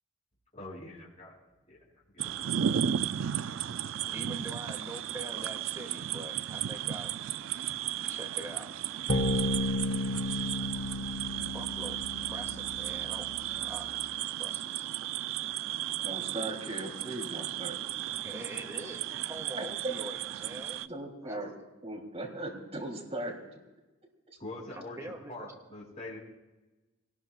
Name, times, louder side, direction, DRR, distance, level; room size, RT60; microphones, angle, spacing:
voice 1, 0.5-1.4 1.7-1.8 2.1-2.7 24.4-26.2, left 2 dB, 35° left, -3 dB, 5.1 m, -44 dB
sound 1, 2.2-20.9, right 10 dB, 65° right, 0.4 m, -35 dB
voice 2, 4.1-7.1 8.1-8.7 11.3-14.1 14.4-14.9 18.2-20.9 21.2-21.4 24.7-25.5, right 1 dB, 15° right, 1 dB, 2.2 m, -44 dB
sound 2, 9.1-13.9, left 1 dB, 75° left, 1.4 m, -33 dB
voice 3, 15.9-17.8 19.6-19.9 20.8-21.5 21.8-23.6, right 2 dB, 30° right, -1 dB, 3.1 m, -38 dB
23.0 x 19.0 x 2.4 m, 1.1 s
head